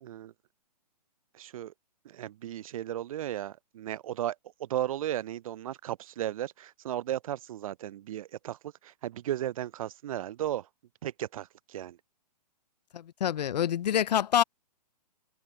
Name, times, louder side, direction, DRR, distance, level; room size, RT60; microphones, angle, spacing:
voice 1, 0.0-0.3 1.4-1.7 2.1-8.6 8.8-10.7 11.0-12.0, right 12 dB, 55° right, 0.4 m, -35 dB
voice 2, 12.9-14.4, left 10 dB, 75° left, 0.5 m, -26 dB
hypercardioid pair, 140°, 21 cm